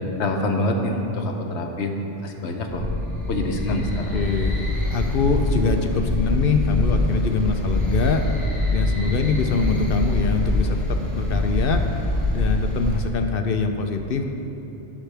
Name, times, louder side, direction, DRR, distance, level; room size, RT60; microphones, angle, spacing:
voice 1, 0.2-2.9 3.3-4.2, left 1 dB, 80° left, 3 dB, 1.2 m, -26 dB
sound 1, 2.7-13.0, left 1 dB, 40° left, 2.3 m, -24 dB
voice 2, 4.1-8.3 8.7-11.8 12.3-14.2, left 4 dB, 60° left, 5 dB, 0.8 m, -24 dB
16.0 x 6.1 x 3.4 m, 3.0 s
omnidirectional pair, 1.2 m